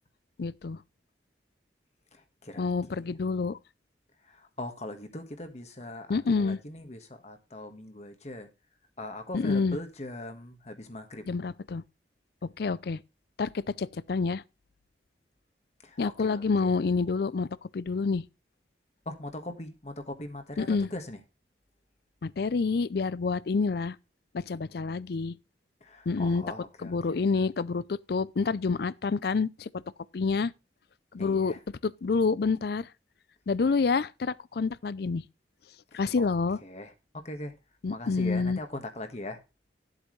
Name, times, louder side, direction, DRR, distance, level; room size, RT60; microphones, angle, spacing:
voice 1, 0.4-0.8 2.6-3.6 6.1-6.6 9.3-9.8 11.3-11.8 12.4-13.0 13.4-14.4 16.0-17.5 17.7-18.2 20.6-20.9 22.2-24.0 24.3-25.3 26.1-26.4 26.8-29.7 30.1-30.5 31.1-31.5 31.8-32.9 33.5-35.2 35.9-36.6 37.8-38.6, left 4 dB, 55° left, 0.4 m, -28 dB
voice 2, 2.1-3.2 4.2-8.5 9.0-11.2 15.8-16.7 19.0-21.2 25.8-27.2 31.2-31.6 35.9-36.3 36.6-37.5 37.9-39.4, left 1 dB, 35° left, 1.4 m, -41 dB
13.0 x 8.0 x 3.2 m
head